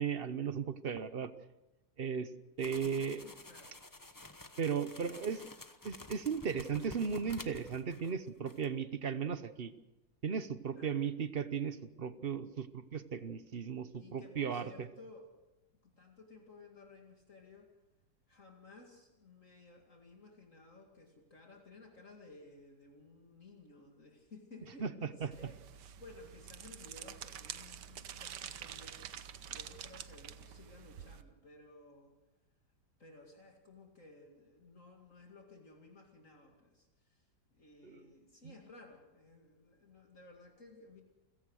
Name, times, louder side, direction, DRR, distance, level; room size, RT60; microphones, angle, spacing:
voice 1, 0.0-1.3 2.0-2.3 2.6-3.2 4.6-5.5 5.8-9.7 10.2-14.9 24.8-25.5 37.8-38.1 38.4-38.5, right 6 dB, 45° right, 13 dB, 0.9 m, -36 dB
sound 1, 2.6-8.2 8.5-8.7, left 2 dB, 15° left, 0.9 m, -51 dB
voice 2, 2.8-3.7 10.7-11.0 14.0-15.3 16.0-17.7 18.3-29.1 29.5-32.1 33.0-37.2 37.5-41.0, left 3 dB, 50° left, 2 dB, 2.7 m, -56 dB
sound 2, 25.3-31.2, right 9 dB, 85° right, 1.6 m, -47 dB
29.0 x 16.5 x 6.4 m, 1.0 s
omnidirectional pair, 1.8 m